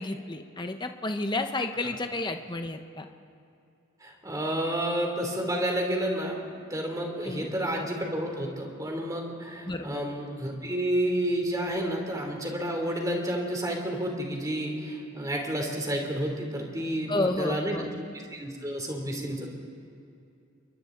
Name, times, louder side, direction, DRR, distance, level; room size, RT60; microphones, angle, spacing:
voice 1, 0.0-3.1 7.2-7.5 9.7-10.0 17.1-17.9, left 2 dB, 20° left, 6 dB, 1.0 m, -31 dB
voice 2, 4.0-6.4 6.7-17.9 18.3-19.5, right 1 dB, 15° right, 1 dB, 3.2 m, -30 dB
29.0 x 23.0 x 3.9 m, 2.6 s
head